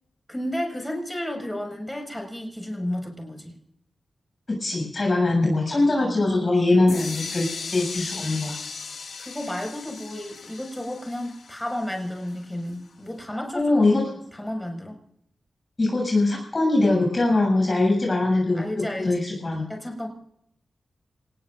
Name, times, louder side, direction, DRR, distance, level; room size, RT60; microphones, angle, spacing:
voice 1, 0.3-3.5 5.8-6.2 9.2-13.7 14.0-15.0 18.5-19.2 19.7-20.1, left 1 dB, 10° left, 1 dB, 6.0 m, -32 dB
voice 2, 4.5-7.5 7.7-8.6 13.5-14.0 15.8-19.6, left 2 dB, 40° left, -1 dB, 7.8 m, -22 dB
sound 1, 6.9-12.7, left 5 dB, 80° left, 2.2 m, -37 dB
27.5 x 20.0 x 2.6 m, 0.75 s
wide cardioid pair, 80°, 0 cm